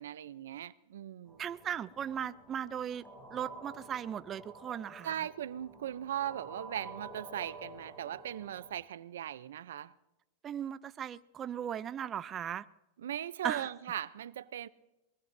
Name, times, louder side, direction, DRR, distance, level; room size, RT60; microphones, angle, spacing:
voice 1, 0.0-1.4 5.0-9.9 13.0-14.7, right 10 dB, 85° right, 0.6 m, -39 dB
sound 1, 1.3-8.7, right 2 dB, 10° left, 6.6 m, -51 dB
voice 2, 1.4-3.0 3.3-5.1 10.4-12.6 13.4-13.7, right 9 dB, 25° right, 0.5 m, -37 dB
22.5 x 21.5 x 2.7 m
supercardioid pair, 145°, 0 cm